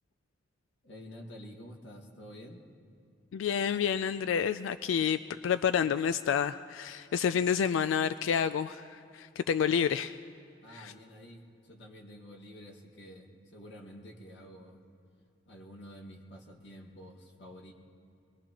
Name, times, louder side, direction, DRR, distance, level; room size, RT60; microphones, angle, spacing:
voice 1, 0.8-2.6 10.6-14.8 15.5-17.7, equal, 70° left, 1 dB, 1.8 m, -49 dB
voice 2, 3.3-10.2 10.7-10.9, left 7 dB, 85° left, 12 dB, 0.3 m, -29 dB
21.5 x 21.5 x 3.0 m, 2.4 s
head